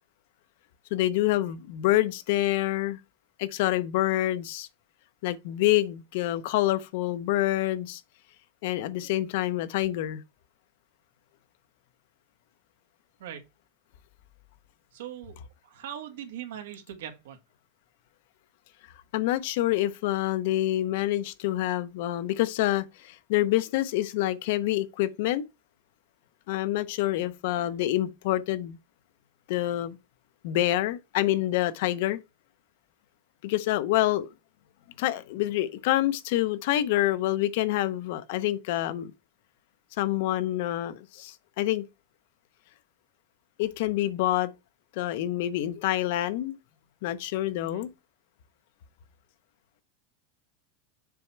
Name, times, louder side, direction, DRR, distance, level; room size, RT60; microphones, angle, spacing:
voice 1, 0.9-3.0 3.4-4.7 5.2-8.0 8.6-10.2 19.1-25.5 26.5-28.8 29.5-30.0 30.4-32.2 33.4-34.3 35.0-39.1 40.0-41.8 43.6-44.5 45.0-46.6 47.0-47.9, left 14 dB, 55° left, 0.6 m, -27 dB
voice 2, 14.9-15.4 15.6-17.4 47.6-47.9, right 10 dB, 85° right, 1.7 m, -41 dB
7.0 x 4.2 x 4.5 m
supercardioid pair, 175°, 0 cm